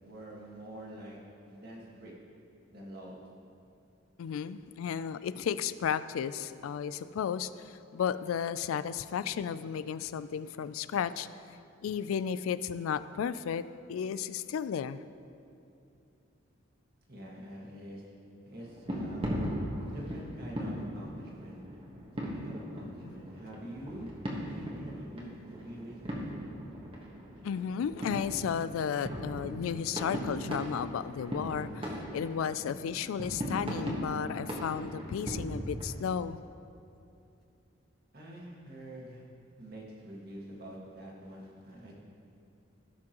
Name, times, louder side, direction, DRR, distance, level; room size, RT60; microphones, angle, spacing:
voice 1, 0.0-1.2 1.4-2.1 2.7-3.2 17.1-18.0 18.4-19.5 19.8-21.6 22.2-24.1 24.4-26.3 38.1-39.2 39.6-42.0, right 1 dB, 50° right, -3 dB, 1.7 m, -46 dB
voice 2, 4.2-11.3 11.8-13.6 13.9-15.0 27.4-36.4, left 7 dB, 90° left, 14 dB, 0.3 m, -33 dB
sound 1, 18.5-35.9, equal, 25° right, 1.3 m, -38 dB
17.0 x 6.1 x 3.0 m, 2.6 s
head